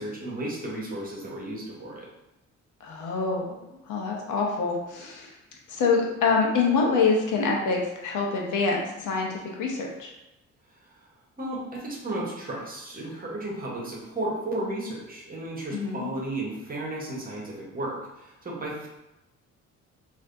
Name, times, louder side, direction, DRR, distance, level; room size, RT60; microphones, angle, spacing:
voice 1, 0.0-2.1 10.8-11.1 11.4-18.9, right 1 dB, 30° right, -3 dB, 1.1 m, -34 dB
voice 2, 2.8-3.6 3.9-5.3 5.7-10.1 15.7-16.1, left 4 dB, 85° left, -1 dB, 0.8 m, -26 dB
3.3 x 2.6 x 2.6 m, 0.93 s
cardioid pair, 90°, 30 cm